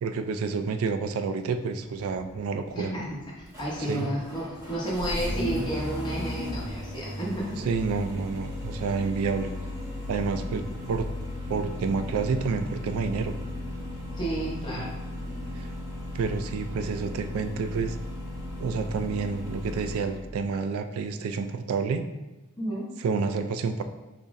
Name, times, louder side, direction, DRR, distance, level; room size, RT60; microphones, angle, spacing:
voice 1, 0.0-2.9 3.9-4.1 7.6-9.5 10.1-11.1 11.5-13.4 14.7-14.8 15.5-15.7 16.1-18.0 18.6-22.1 23.0-23.8, right 5 dB, 85° right, 9 dB, 0.3 m, -29 dB
Engine starting, 1.9-20.2, left 1 dB, 15° right, 0.6 m, -36 dB
voice 2, 2.7-3.2 3.6-7.6 14.2-14.9 22.6-22.9, right 1 dB, 20° left, -5 dB, 0.8 m, -31 dB
4.0 x 2.0 x 3.5 m, 1.1 s
head